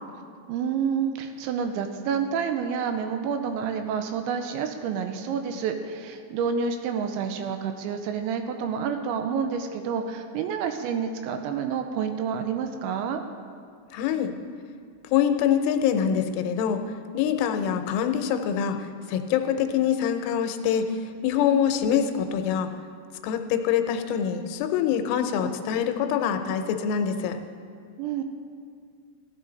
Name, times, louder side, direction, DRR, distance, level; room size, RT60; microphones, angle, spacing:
voice 1, 0.5-13.2 28.0-28.2, right 6 dB, 85° right, 7 dB, 2.8 m, -29 dB
voice 2, 13.9-14.3 15.1-16.8 17.1-20.9 21.2-22.7 23.2-27.4, left 8 dB, 90° left, 7 dB, 3.2 m, -25 dB
15.5 x 11.0 x 3.9 m, 2.2 s
omnidirectional pair, 5.5 m